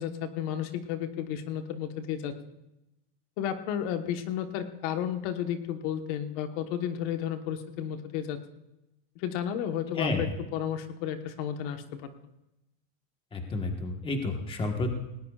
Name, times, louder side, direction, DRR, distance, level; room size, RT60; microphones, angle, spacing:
voice 1, 0.0-2.4 3.4-8.4 9.2-12.1, left 9 dB, 55° left, 7 dB, 1.3 m, -32 dB
voice 2, 10.0-10.3 13.3-14.9, left 2 dB, 10° left, 3 dB, 1.3 m, -30 dB
19.0 x 18.5 x 2.4 m, 0.93 s
supercardioid pair, 170°, 42 cm